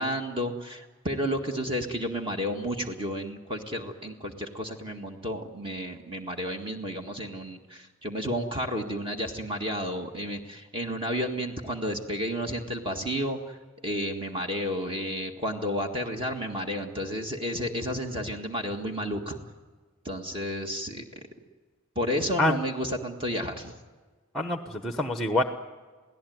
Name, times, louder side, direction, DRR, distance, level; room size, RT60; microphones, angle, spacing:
voice 1, 0.0-13.6 13.8-19.4 20.1-21.0 22.0-23.7, equal, 25° right, 3 dB, 1.8 m, -31 dB
voice 2, 24.3-25.4, left 1 dB, ahead, 6 dB, 1.1 m, -26 dB
29.0 x 17.5 x 9.4 m, 1.4 s
head